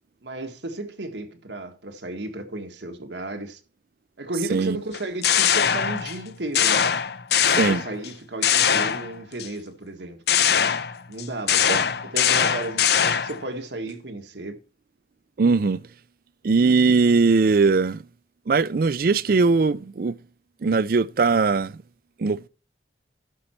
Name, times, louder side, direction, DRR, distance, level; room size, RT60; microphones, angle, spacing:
voice 1, 0.2-3.6 4.2-6.9 7.6-10.7 11.1-11.7 12.0-14.6, right 2 dB, 80° right, 1.6 m, -34 dB
sound 1, 4.9-6.2 6.5-8.1 8.4-9.5 10.3-13.4, left 8 dB, 65° left, 0.7 m, -21 dB
voice 2, 7.5-7.8 11.7-11.8 15.4-15.8 16.4-18.0 18.5-20.2 20.6-21.7 22.2-22.5, right 4 dB, 55° right, 0.4 m, -20 dB
11.0 x 6.5 x 4.4 m
head